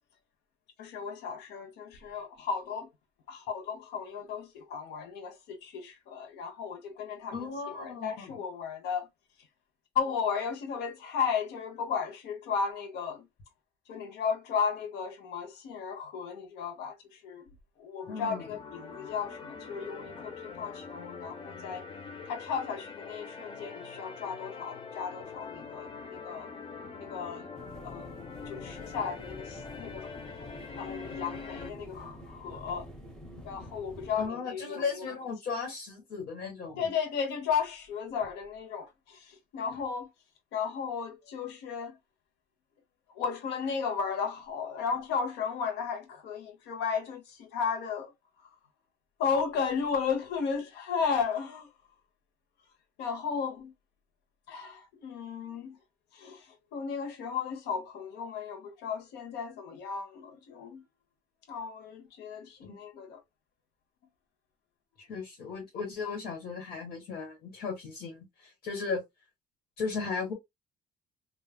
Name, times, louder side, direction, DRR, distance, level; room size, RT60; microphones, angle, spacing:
voice 1, 0.8-2.9 3.3-7.4 7.7-9.1 9.9-13.3 13.9-17.5 17.8-21.8 22.3-26.5 27.0-27.5 27.8-30.1 30.8-32.9 33.4-35.0 36.8-40.1 40.5-42.0 43.1-48.1 48.4-48.5 49.2-51.7 53.0-53.7 54.5-55.8 56.1-60.8 61.5-63.2, left 6 dB, 85° left, 0.9 m, -34 dB
voice 2, 7.3-8.4 18.1-18.4 34.2-36.8 62.6-62.7 65.0-69.0 69.8-70.3, left 5 dB, 60° left, 1.5 m, -36 dB
sound 1, 18.0-31.7, left 5 dB, 35° left, 0.8 m, -44 dB
sound 2, 27.5-34.3, equal, 5° left, 0.8 m, -47 dB
3.4 x 2.4 x 2.2 m
cardioid pair, 110°, 17 cm